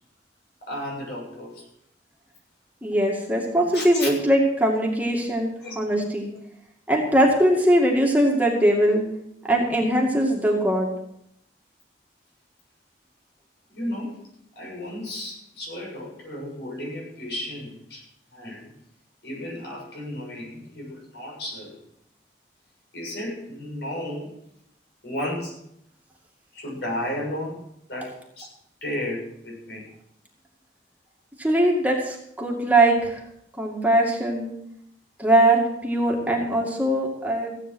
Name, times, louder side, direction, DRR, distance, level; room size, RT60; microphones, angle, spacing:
voice 1, 0.7-1.7 3.7-4.1 5.6-5.7 13.7-14.3 14.6-18.0 18.3-18.7 19.2-21.8 22.9-24.3 25.0-25.6 26.5-27.6 27.9-28.5 28.8-29.9 36.2-36.3, left 1 dB, 70° left, -2 dB, 7.1 m, -33 dB
voice 2, 2.8-6.3 6.9-9.0 9.5-10.9 31.4-33.2 33.6-34.5 35.2-37.5, right 1 dB, 10° right, -1 dB, 2.2 m, -21 dB
16.0 x 9.2 x 6.3 m, 0.75 s
head